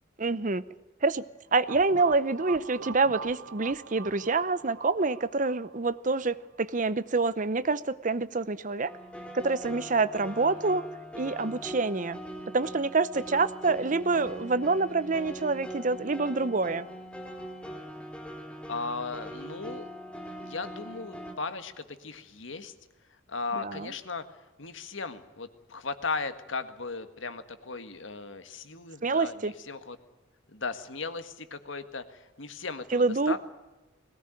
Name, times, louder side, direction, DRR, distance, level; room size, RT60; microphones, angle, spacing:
voice 1, 0.2-0.6 1.0-1.2 1.5-8.9 9.3-10.8 11.1-12.2 12.5-16.9 23.6-23.9 29.0-29.5 32.9-33.4, right 3 dB, 40° right, 16 dB, 0.7 m, -27 dB
sound 1, 1.7-6.4, right 6 dB, 85° right, 0.8 m, -44 dB
sound 2, 8.9-21.3, equal, 5° left, 2.7 m, -42 dB
voice 2, 18.7-19.9 20.4-22.7 23.3-30.0 30.5-33.4, left 4 dB, 80° left, 10 dB, 1.7 m, -37 dB
20.5 x 18.0 x 9.0 m, 1.1 s
head